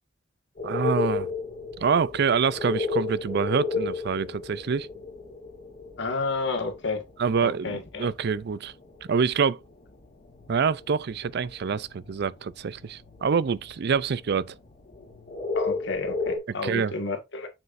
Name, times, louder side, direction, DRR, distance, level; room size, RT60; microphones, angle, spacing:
sound 1, 0.6-7.5 7.8-8.4 8.7-9.3 9.6-16.4, left 4 dB, 40° left, 2.7 m, -33 dB
voice 1, 0.6-1.3 1.8-4.9 7.2-8.7 9.1-9.6 10.5-14.6 16.6-16.9, right 6 dB, 55° right, 0.4 m, -26 dB
voice 2, 6.0-7.0 7.4-8.1 15.5-17.5, left 3 dB, 60° left, 1.9 m, -30 dB
7.2 x 6.4 x 2.6 m
head